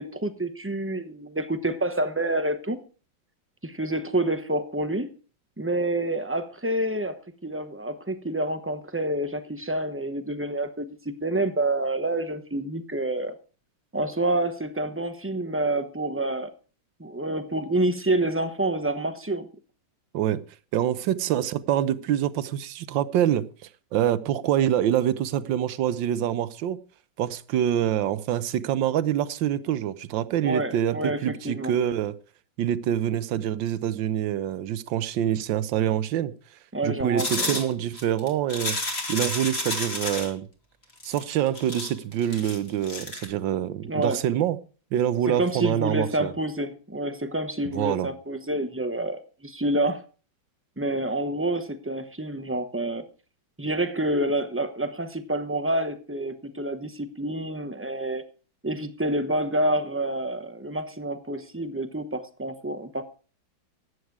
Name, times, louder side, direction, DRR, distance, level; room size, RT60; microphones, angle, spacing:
voice 1, 0.0-2.8 3.6-5.1 5.6-13.3 13.9-16.5 17.0-19.5 30.4-31.2 31.4-31.7 36.7-37.6 43.9-44.2 45.4-50.0 50.8-53.1 53.6-58.2 58.6-63.0, right 1 dB, 15° right, 0.5 m, -28 dB
voice 2, 20.7-23.4 23.9-26.8 27.2-32.1 32.6-36.3 36.8-38.8 39.1-40.5 41.0-44.6 44.9-46.3 47.7-48.1, right 11 dB, 75° right, 1.5 m, -25 dB
sound 1, 37.2-40.3 41.0-43.3, left 2 dB, 30° left, 2.8 m, -31 dB
14.5 x 9.7 x 4.8 m
omnidirectional pair, 2.2 m